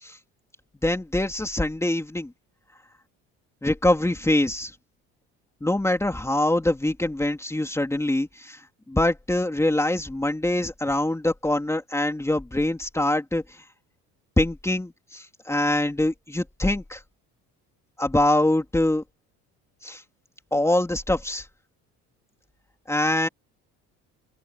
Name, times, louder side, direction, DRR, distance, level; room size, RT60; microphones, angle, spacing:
voice 1, 0.8-2.3 3.6-4.7 5.6-8.6 8.9-13.6 14.4-17.0 18.0-19.0 19.8-20.0 20.5-21.5 22.9-23.3, left 1 dB, 10° left, 3.3 m, -24 dB
open air
supercardioid pair, 95°, 32 cm